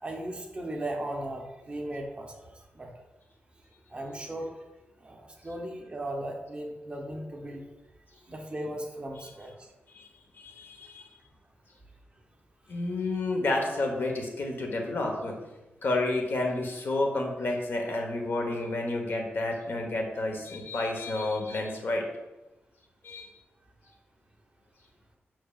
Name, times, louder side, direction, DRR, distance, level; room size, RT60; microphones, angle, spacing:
voice 1, 0.0-2.9 3.9-4.6 5.0-7.6 8.3-9.5 13.3-13.4, right 1 dB, 25° right, 1 dB, 0.8 m, -37 dB
voice 2, 10.4-11.0 12.7-15.4 15.8-22.0 23.0-23.3, left 2 dB, 60° left, 2 dB, 1.1 m, -30 dB
7.5 x 5.8 x 2.4 m, 1.0 s
wide cardioid pair, 140°, 4 cm